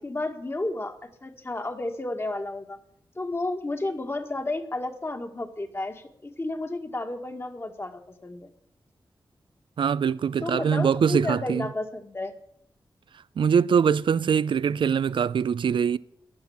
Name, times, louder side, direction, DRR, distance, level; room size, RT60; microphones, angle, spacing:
voice 1, 0.0-2.8 3.2-8.5 10.4-12.3, left 2 dB, 30° left, 1.9 m, -32 dB
voice 2, 9.8-11.7 13.4-16.0, right 7 dB, 80° right, 0.5 m, -23 dB
15.0 x 10.5 x 7.2 m
cardioid pair, 70°, 8 cm